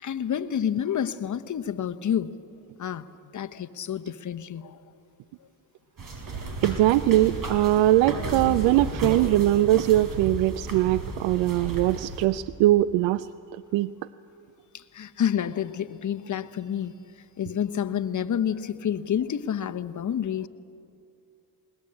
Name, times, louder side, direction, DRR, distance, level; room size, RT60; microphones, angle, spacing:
voice 1, 0.0-2.3 2.8-3.1 3.3-4.8 14.7-16.9 17.4-20.5, left 9 dB, 40° left, 1.0 m, -29 dB
sound 1, 6.0-12.3, right 2 dB, 45° right, 4.7 m, -33 dB
voice 2, 6.6-13.3 13.7-13.9, right 15 dB, 85° right, 0.5 m, -21 dB
21.0 x 19.5 x 8.7 m
supercardioid pair, 75°, 44 cm